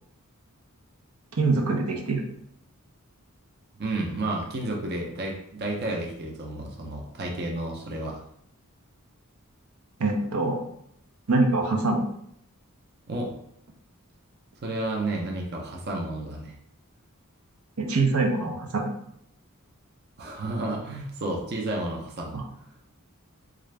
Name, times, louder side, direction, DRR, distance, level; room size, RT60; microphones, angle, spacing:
voice 1, 1.3-2.2 10.0-10.6 11.3-12.1 17.8-18.9, right 3 dB, 85° right, 1 dB, 0.7 m, -24 dB
voice 2, 3.8-8.2 13.1-13.3 14.6-16.5 20.2-22.4, right 2 dB, 50° right, 0 dB, 0.6 m, -31 dB
3.7 x 2.5 x 3.2 m, 0.71 s
head